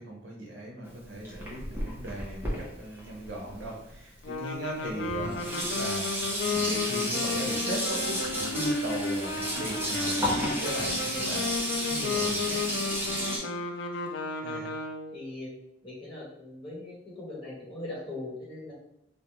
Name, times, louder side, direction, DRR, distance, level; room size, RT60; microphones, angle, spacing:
voice 1, 0.0-6.1 6.4-12.6, right 1 dB, 80° right, -2 dB, 0.6 m, -38 dB
Sink (filling or washing), 0.8-4.0 4.7-4.8 5.1-13.4, equal, 10° right, 0.6 m, -32 dB
sound 1, 4.2-15.2, left 4 dB, 70° left, 0.4 m, -33 dB
voice 2, 14.4-14.7 15.1-15.5 15.8-18.7, left 2 dB, 25° left, -7 dB, 1.0 m, -40 dB
2.3 x 2.1 x 2.9 m, 0.80 s
head